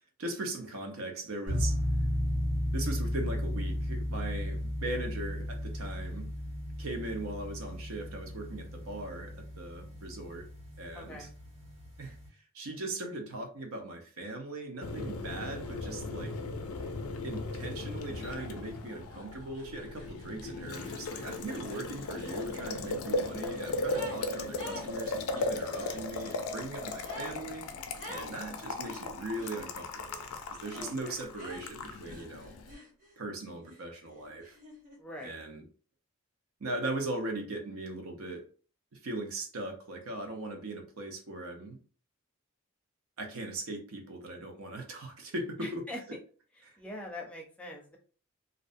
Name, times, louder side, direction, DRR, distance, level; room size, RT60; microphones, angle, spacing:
voice 1, 0.2-1.8 2.7-6.3 6.8-10.5 10.8-11.3 12.0-12.2 12.5-16.4 17.2-27.7 28.1-32.5 33.2-34.6 35.2-35.6 36.6-38.4 38.9-41.8 43.2-46.2 46.6-46.8, right 2 dB, 75° right, 0.6 m, -39 dB
sound 1, 1.5-12.3, equal, 55° right, 1.3 m, -34 dB
voice 2, 10.9-11.3 30.7-31.2 35.0-35.3 45.6-46.0 46.8-48.0, left 1 dB, 5° left, 0.5 m, -43 dB
Boiling, 14.8-32.7, left 2 dB, 85° left, 0.4 m, -37 dB
sound 2, 19.1-19.3 19.5-24.2 24.5-26.0 27.0-27.4 28.0-28.4 28.8-29.6 30.7-31.0 31.4-33.2 33.6-35.0, equal, 35° right, 0.8 m, -48 dB
2.5 x 2.0 x 2.5 m
head